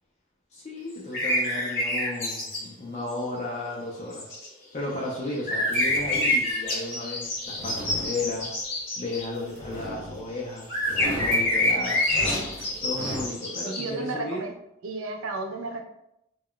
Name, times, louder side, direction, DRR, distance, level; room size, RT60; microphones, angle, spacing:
voice 1, 0.5-4.4 4.7-8.5 9.0-12.0 12.8-14.4, left 2 dB, 30° left, -4 dB, 0.4 m, -34 dB
sound 1, 1.1-2.6 3.1-3.2 4.1-4.5 5.3-9.3 10.6-13.9, left 1 dB, 50° left, 1.0 m, -27 dB
sound 2, 5.7-6.5 7.3-8.6 9.5-10.4 10.7-13.3, equal, 45° right, 1.0 m, -37 dB
voice 2, 13.7-14.5 14.8-15.8, right 3 dB, 85° right, 3 dB, 0.5 m, -33 dB
2.2 x 2.1 x 3.7 m, 0.81 s
head